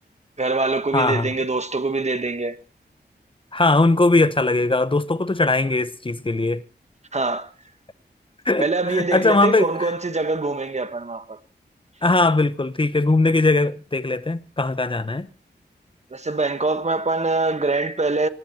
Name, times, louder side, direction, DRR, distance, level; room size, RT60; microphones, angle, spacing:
voice 1, 0.4-2.6 7.1-7.5 8.6-11.4 16.1-18.3, right 3 dB, 40° right, 1.4 m, -24 dB
voice 2, 0.9-1.3 3.5-6.6 8.4-9.9 12.0-15.3, left 2 dB, 30° left, 1.0 m, -20 dB
24.0 x 19.0 x 2.9 m
wide cardioid pair, 75°, 18 cm